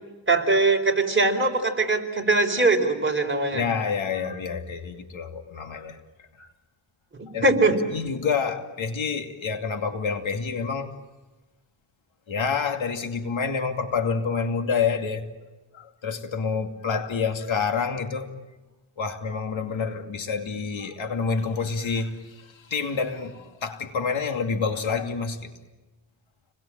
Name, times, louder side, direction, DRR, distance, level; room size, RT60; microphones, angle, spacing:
voice 1, 0.3-3.6 7.1-7.8, right 3 dB, 25° right, 4.4 m, -21 dB
voice 2, 3.5-6.0 6.4-6.5 7.3-10.9 12.3-15.3 15.7-18.3 19.0-25.5, left 5 dB, 80° left, 2.6 m, -28 dB
30.0 x 22.0 x 9.0 m
cardioid pair, 85°, 46 cm